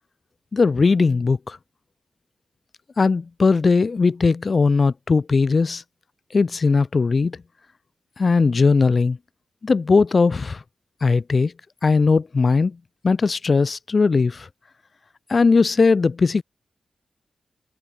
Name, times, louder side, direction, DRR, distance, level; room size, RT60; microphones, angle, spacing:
voice 1, 0.5-1.6 3.0-5.8 6.3-7.4 8.2-9.2 9.6-10.6 11.0-11.5 11.8-12.8 13.0-14.5 15.3-16.4, left 4 dB, 50° left, 1.0 m, -19 dB
cardioid pair, 55°, 0 cm